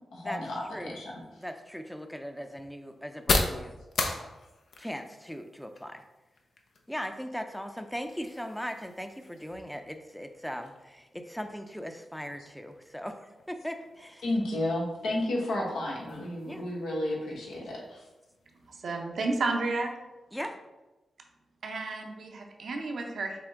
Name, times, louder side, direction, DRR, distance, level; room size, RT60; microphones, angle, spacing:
voice 1, 0.1-1.2 14.2-18.0, left 1 dB, 85° left, -3 dB, 1.1 m, -32 dB
sound 1, 1.2-18.8, left 3 dB, 70° left, 0.5 m, -39 dB
voice 2, 1.4-4.4 4.8-6.0 6.9-14.2 16.4-16.6 20.3-20.6, equal, 5° left, 7 dB, 0.5 m, -39 dB
voice 3, 18.7-19.9 21.6-23.4, right 3 dB, 70° right, 2 dB, 0.7 m, -32 dB
5.8 x 2.1 x 3.7 m, 1.1 s
supercardioid pair, 45°, 0 cm